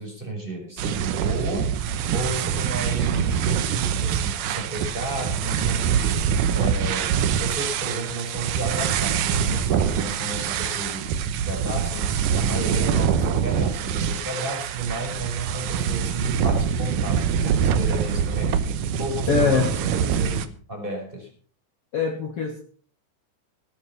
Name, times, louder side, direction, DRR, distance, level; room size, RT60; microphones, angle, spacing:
voice 1, 0.0-1.8 2.1-6.2 6.5-21.3, right 2 dB, 15° right, 1 dB, 5.4 m, -32 dB
sound 1, 0.8-20.5, right 7 dB, 75° right, 2.5 m, -24 dB
voice 2, 19.3-19.7 21.9-22.6, left 5 dB, 50° left, 3 dB, 2.3 m, -22 dB
18.5 x 9.9 x 6.0 m, 0.43 s
omnidirectional pair, 3.9 m